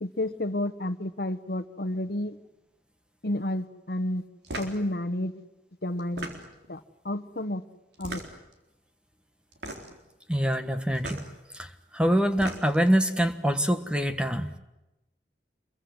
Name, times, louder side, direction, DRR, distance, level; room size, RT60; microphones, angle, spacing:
voice 1, 0.0-2.3 3.2-4.2 4.6-5.3 5.8-6.3 6.7-6.8 7.0-7.6 8.0-8.2, left 1 dB, 55° left, 9 dB, 1.2 m, -30 dB
sound 1, 4.4-4.8 6.0-6.7 7.9-8.5 9.5-10.0 10.9-11.3 12.2-12.9, right 2 dB, 65° right, 4.0 m, -38 dB
voice 2, 10.3-11.3 11.6-11.7 11.9-14.5, equal, 5° right, 8 dB, 1.3 m, -25 dB
27.5 x 23.0 x 7.9 m, 0.95 s
head